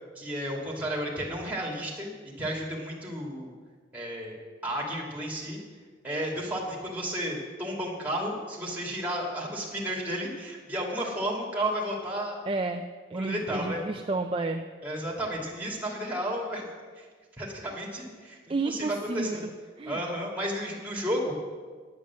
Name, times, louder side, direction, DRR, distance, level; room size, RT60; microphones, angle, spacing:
voice 1, 0.2-2.1 2.4-3.5 3.9-4.4 4.6-5.6 6.0-12.4 13.1-13.8 14.8-17.1 17.4-19.4 19.9-21.3, equal, 10° right, -3 dB, 2.5 m, -32 dB
voice 2, 12.5-12.8 13.1-14.6 18.5-19.5 19.8-20.0, right 3 dB, 30° right, 5 dB, 0.4 m, -31 dB
10.0 x 8.7 x 7.4 m, 1.5 s
head